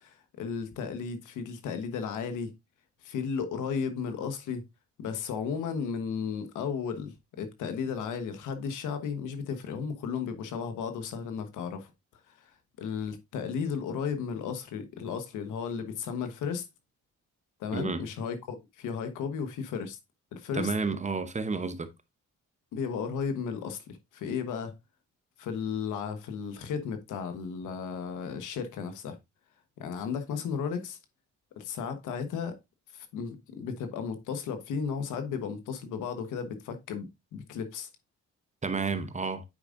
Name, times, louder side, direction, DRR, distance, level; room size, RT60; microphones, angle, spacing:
voice 1, 0.0-2.5 3.0-4.6 5.0-11.9 12.3-12.5 12.8-16.6 17.6-20.0 20.3-20.7 22.7-24.7 25.4-29.2 29.8-31.0 31.6-32.6 32.9-37.9, left 6 dB, 85° left, 1.2 m, -34 dB
voice 2, 17.7-18.1 20.5-21.9 38.6-39.4, right 4 dB, 25° right, 0.8 m, -31 dB
8.8 x 4.9 x 2.5 m
cardioid pair, 90°, 30 cm